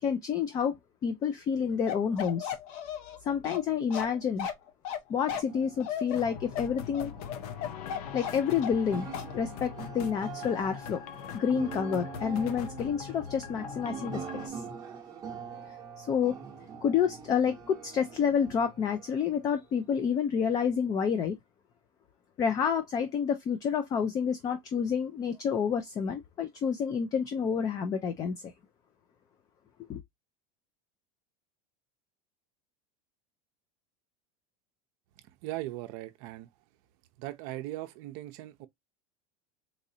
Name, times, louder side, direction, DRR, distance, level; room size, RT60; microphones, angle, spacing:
voice 1, 0.0-0.7 1.0-2.5 3.2-4.5 5.1-7.1 8.1-9.1 9.3-11.0 11.3-14.6 16.0-16.3 16.8-21.4 22.4-28.4 29.9-30.0, left 7 dB, 20° left, 0.3 m, -29 dB
Bark, 1.9-8.9 9.1-9.3, left 8 dB, 60° left, 0.9 m, -36 dB
sound 1, 5.3-20.0, right 7 dB, 20° right, 0.8 m, -45 dB
sound 2, 6.1-14.5, left 8 dB, 85° left, 0.6 m, -41 dB
voice 2, 35.4-36.5 37.2-38.7, right 16 dB, 50° right, 0.6 m, -39 dB
4.0 x 2.6 x 2.7 m
supercardioid pair, 165°, 19 cm